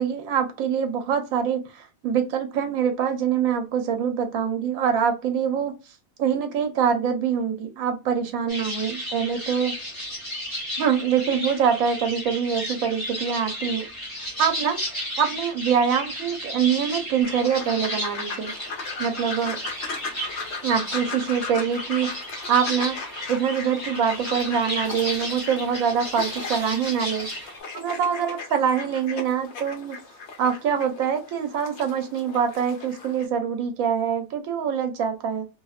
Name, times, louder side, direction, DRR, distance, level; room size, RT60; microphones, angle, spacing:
voice 1, 0.0-5.7 6.2-9.7 10.8-13.9 14.4-14.8 15.2-18.5 19.0-19.6 20.6-22.1 22.5-23.0 23.3-27.3 27.7-30.0 30.4-35.4, right 7 dB, 80° right, 5 dB, 1.0 m, -24 dB
sound 1, 8.5-27.6, equal, 25° left, 0.7 m, -33 dB
sound 2, 17.2-33.3, left 4 dB, 60° left, 0.8 m, -37 dB
2.6 x 2.1 x 2.3 m, 0.29 s
omnidirectional pair, 1.4 m